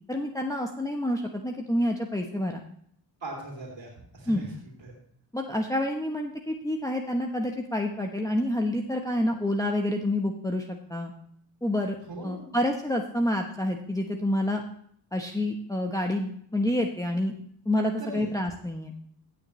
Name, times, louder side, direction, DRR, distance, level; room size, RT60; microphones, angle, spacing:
voice 1, 0.1-2.6 4.3-4.5 5.3-11.1 11.6-12.0 12.2-14.6 15.1-17.3 17.7-18.9, left 1 dB, 10° left, 1 dB, 1.0 m, -28 dB
voice 2, 3.2-4.5 4.8-4.9 12.1-12.5 18.0-18.2, right 2 dB, 85° right, -3 dB, 2.9 m, -39 dB
17.0 x 6.5 x 3.2 m, 0.66 s
cardioid pair, 50°, 43 cm